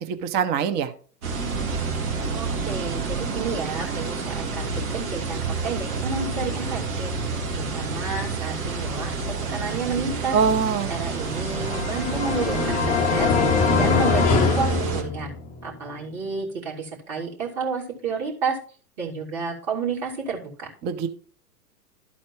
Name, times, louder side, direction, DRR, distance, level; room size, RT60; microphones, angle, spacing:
voice 1, 0.1-0.9 10.3-10.9 20.8-21.1, right 7 dB, 20° right, 9 dB, 0.7 m, -23 dB
sound 1, 1.2-15.0, right 4 dB, 65° right, 2.4 m, -29 dB
voice 2, 2.3-7.1 7.5-10.4 10.9-13.3 13.7-15.3 15.6-18.6 19.0-20.7, right 5 dB, 40° right, -2 dB, 3.0 m, -30 dB
sound 2, 11.2-15.6, left 5 dB, 15° left, 0.6 m, -23 dB
12.5 x 4.2 x 4.5 m, 0.42 s
hypercardioid pair, 115°, 47 cm